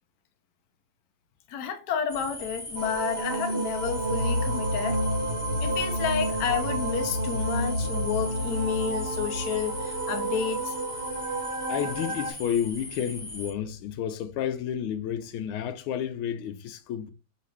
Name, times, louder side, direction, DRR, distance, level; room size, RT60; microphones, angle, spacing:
voice 1, 1.5-5.1 5.6-10.7, left 7 dB, 65° left, 1.1 m, -30 dB
sound 1, 2.1-13.5, left 1 dB, 30° left, 1.3 m, -40 dB
sound 2, 2.7-12.3, right 2 dB, 40° right, 0.9 m, -32 dB
sound 3, 3.7-11.0, left 1 dB, 70° right, 1.4 m, -32 dB
voice 2, 11.7-17.1, left 9 dB, 90° left, 1.5 m, -31 dB
5.6 x 2.5 x 3.1 m
omnidirectional pair, 2.2 m